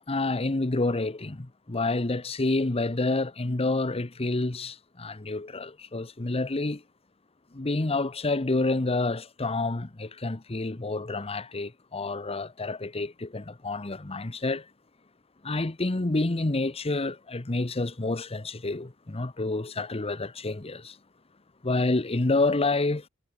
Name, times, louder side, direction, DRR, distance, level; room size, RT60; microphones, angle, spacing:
voice 1, 0.0-6.8 7.5-14.7 15.4-21.0 21.6-23.1, left 2 dB, 25° left, 0.9 m, -28 dB
head